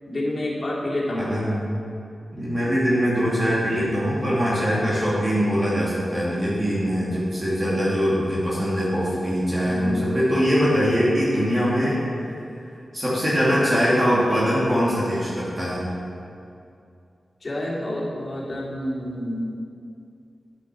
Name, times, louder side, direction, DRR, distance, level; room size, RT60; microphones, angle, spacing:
voice 1, 0.1-1.3 9.6-10.0 17.4-19.5, left 1 dB, 35° left, -6 dB, 2.9 m, -28 dB
voice 2, 1.1-1.7 2.3-12.0 12.9-15.9, equal, 25° right, -8 dB, 2.7 m, -22 dB
9.0 x 8.3 x 6.3 m, 2.5 s
wide cardioid pair, 110°, 0 cm